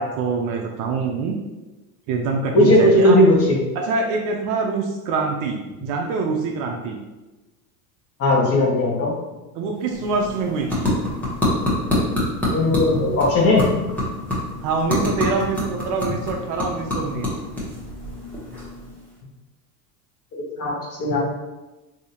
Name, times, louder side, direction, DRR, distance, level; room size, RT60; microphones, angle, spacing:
voice 1, 0.0-1.4 2.1-3.2 3.7-7.0 9.5-10.9 14.6-17.3, right 4 dB, 45° right, 1 dB, 0.5 m, -25 dB
voice 2, 2.5-3.6 8.2-9.1 12.5-13.6 20.6-20.7 21.0-21.2, left 1 dB, 30° left, -4 dB, 1.1 m, -16 dB
sound 1, 9.7-19.2, left 1 dB, 5° left, 1.1 m, -26 dB
3.4 x 2.7 x 2.8 m, 1.1 s
supercardioid pair, 115°, 46 cm